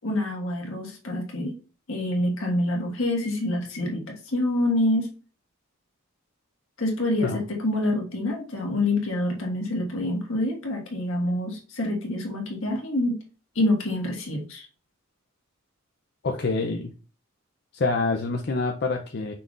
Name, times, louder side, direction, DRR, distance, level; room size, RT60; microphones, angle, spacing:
voice 1, 0.0-1.6 1.9-5.1 6.8-13.2 13.5-14.7, left 1 dB, 70° left, 1 dB, 1.6 m, -26 dB
voice 2, 16.2-16.9 17.7-19.3, left 3 dB, 50° left, 4 dB, 0.5 m, -26 dB
5.7 x 3.8 x 2.4 m, 0.35 s
head